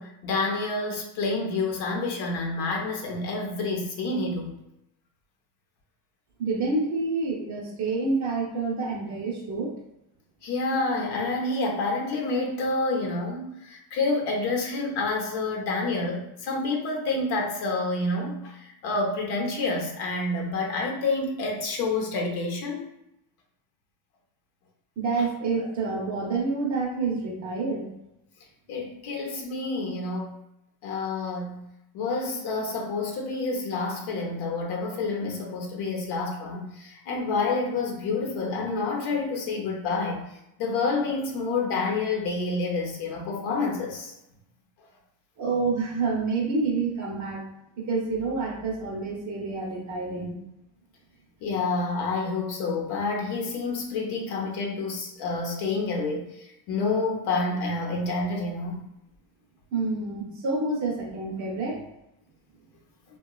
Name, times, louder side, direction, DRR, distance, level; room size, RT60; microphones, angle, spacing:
voice 1, 0.0-4.5 10.4-22.8 25.2-25.3 28.7-30.3 30.8-31.6 31.9-40.2 40.6-44.1 51.4-58.8, left 3 dB, 65° left, 0 dB, 0.8 m, -28 dB
voice 2, 6.4-9.7 25.0-27.9 45.4-47.4 47.8-50.3 59.7-61.8, right 3 dB, 40° right, -1 dB, 0.8 m, -28 dB
2.8 x 2.2 x 2.3 m, 0.83 s
cardioid pair, 115°, 42 cm